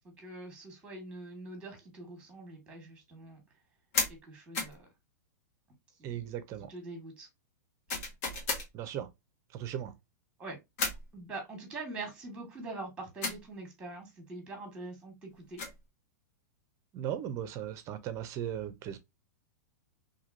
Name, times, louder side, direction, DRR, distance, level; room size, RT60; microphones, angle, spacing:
voice 1, 0.0-3.4 4.1-4.9 6.0-6.2 6.7-7.3 10.4-10.6 11.1-15.6, right 2 dB, 10° right, 1.3 m, -44 dB
sound 1, 3.9-4.2 4.5-4.8 7.9-8.7 10.8-11.1 13.2-13.4 15.3-15.8, left 3 dB, 55° left, 1.2 m, -33 dB
voice 2, 6.0-6.7 8.7-9.1 9.5-9.9 16.9-19.0, right 10 dB, 30° right, 0.5 m, -37 dB
2.9 x 2.7 x 2.5 m
hypercardioid pair, 135°, 10 cm